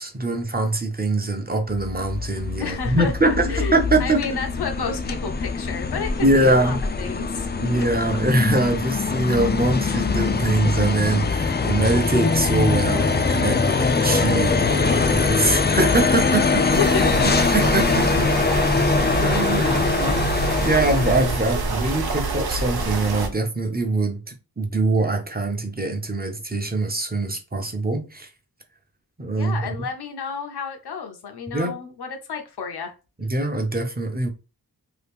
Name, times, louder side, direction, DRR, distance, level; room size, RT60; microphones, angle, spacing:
voice 1, 0.0-4.4 6.2-6.8 7.5-16.6 17.2-18.3 18.5-18.7 19.2-20.2 20.6-28.3 29.2-29.7 31.5-31.7 33.2-34.3, right 2 dB, 25° right, 0.7 m, -23 dB
sound 1, 1.7-21.5, left 4 dB, 30° left, 0.4 m, -23 dB
voice 2, 2.6-3.1 3.5-7.9 16.1-16.2 16.5-17.1 29.4-32.9, left 5 dB, 80° left, 0.7 m, -30 dB
sound 2, 16.7-23.3, right 3 dB, 75° right, 0.6 m, -26 dB
2.8 x 2.4 x 3.4 m
wide cardioid pair, 70°, 39 cm